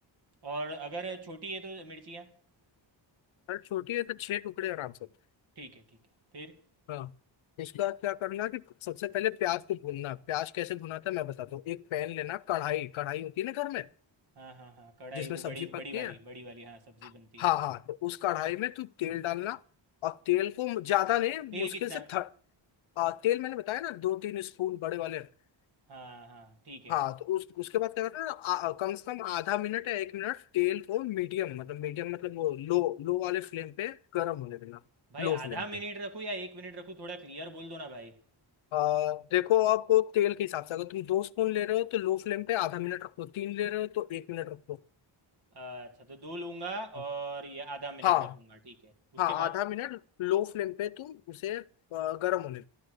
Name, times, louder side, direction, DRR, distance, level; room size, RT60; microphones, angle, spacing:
voice 1, 0.4-2.3 5.6-5.8 6.3-6.6 14.4-17.4 21.5-22.1 25.9-26.9 35.1-38.1 45.5-48.1 48.7-49.5, right 2 dB, 55° right, 2.3 m, -40 dB
voice 2, 3.5-4.9 6.9-7.1 7.6-13.9 15.1-16.1 17.0-17.1 17.4-19.6 20.0-22.3 23.0-25.3 26.9-34.8 35.2-35.6 38.7-44.8 48.0-48.3 49.2-52.7, left 14 dB, 90° left, 0.7 m, -31 dB
13.0 x 12.5 x 6.5 m
wide cardioid pair, 165°, 47 cm